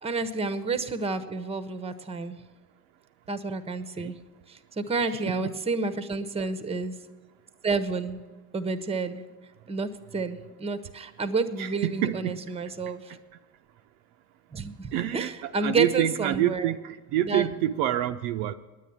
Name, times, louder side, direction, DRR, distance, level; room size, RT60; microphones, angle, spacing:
voice 1, 0.0-2.4 3.3-4.2 4.5-6.9 7.6-8.2 8.5-9.2 9.7-13.0 14.5-16.7 17.2-17.5, right 4 dB, 15° right, 12 dB, 0.8 m, -30 dB
voice 2, 5.1-5.6 11.6-12.4 14.9-18.5, right 12 dB, 60° right, 8 dB, 0.5 m, -27 dB
9.9 x 9.3 x 6.9 m, 1.3 s
hypercardioid pair, 75°, 47 cm